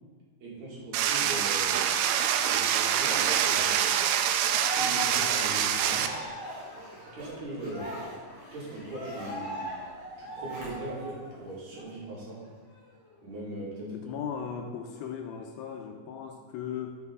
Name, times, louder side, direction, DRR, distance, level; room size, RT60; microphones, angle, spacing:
voice 1, 0.4-2.1 2.4-4.0 4.6-6.1 7.1-8.0 8.5-9.6 10.2-12.5 13.2-14.1, right 1 dB, 50° right, -6 dB, 3.2 m, -40 dB
sound 1, 0.9-6.1, right 9 dB, 90° right, 2.7 m, -25 dB
Cheering, 3.4-11.4 11.7-11.9 12.3-13.3, right 1 dB, 25° left, 2.2 m, -40 dB
Zipper (clothing), 3.6-11.1 11.5-11.6, right 1 dB, 65° right, 3.7 m, -48 dB
voice 2, 13.8-17.0, left 7 dB, 80° left, 3 dB, 2.3 m, -37 dB
12.5 x 8.3 x 3.6 m, 1.5 s
omnidirectional pair, 4.7 m